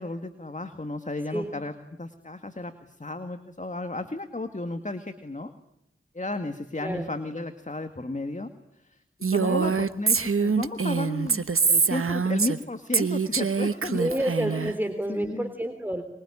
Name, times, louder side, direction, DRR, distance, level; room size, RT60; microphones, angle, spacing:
voice 1, 0.0-1.7 2.0-5.5 6.1-8.5 8.8-9.0 9.3-14.2 14.4-14.7 15.1-15.5, left 2 dB, 35° left, 8 dB, 2.1 m, -33 dB
Female speech woman speaking, 9.2-12.6 12.9-14.7, right 5 dB, 85° right, 1.2 m, -24 dB
voice 2, 9.4-9.8 13.9-16.0, right 1 dB, 10° right, 6 dB, 3.3 m, -29 dB
25.5 x 22.5 x 9.9 m, 0.79 s
wide cardioid pair, 40°, 21 cm